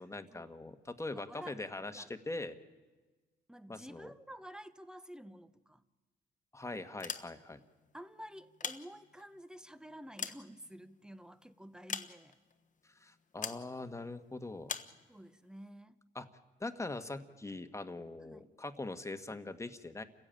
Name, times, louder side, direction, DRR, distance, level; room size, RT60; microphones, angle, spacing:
voice 1, 0.0-2.6 3.7-4.1 6.5-7.6 12.8-14.7 16.1-16.3 16.6-20.0, left 2 dB, 15° left, 8 dB, 1.5 m, -42 dB
voice 2, 1.1-2.1 3.5-5.8 7.9-12.4 15.1-16.0 18.2-18.5, equal, 5° right, 13 dB, 1.0 m, -51 dB
sound 1, 6.9-7.7 8.4-9.4 9.9-11.1 11.9-12.5 13.4-13.7 14.7-15.0, left 6 dB, 40° left, 1.2 m, -41 dB
28.5 x 16.0 x 9.0 m, 1.3 s
cardioid pair, 90°, 20 cm